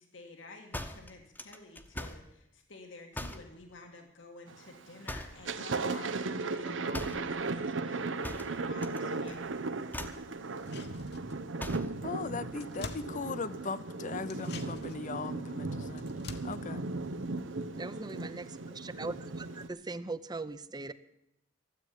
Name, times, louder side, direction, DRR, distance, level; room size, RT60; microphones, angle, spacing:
voice 1, 0.0-9.4, left 3 dB, 90° left, 3 dB, 1.8 m, -51 dB
sound 1, 0.7-2.3 3.1-3.5 5.0-5.5 6.9-7.3 8.2-9.0 9.3-9.5 9.9-10.3 11.6-12.0, left 1 dB, 10° left, 0.9 m, -41 dB
Thunder, 4.5-4.9 5.3-19.7, right 3 dB, 80° right, 0.9 m, -37 dB
sound 2, 10.5-11.6 11.9-12.0 12.3-13.8 14.2-18.0 18.3-18.4, left 3 dB, 60° left, 1.1 m, -48 dB
voice 2, 12.0-16.0 16.4-16.8, left 4 dB, 40° left, 15 dB, 0.6 m, -38 dB
voice 3, 17.8-20.9, right 3 dB, 20° right, 14 dB, 0.6 m, -40 dB
13.0 x 8.1 x 9.9 m, 0.84 s
head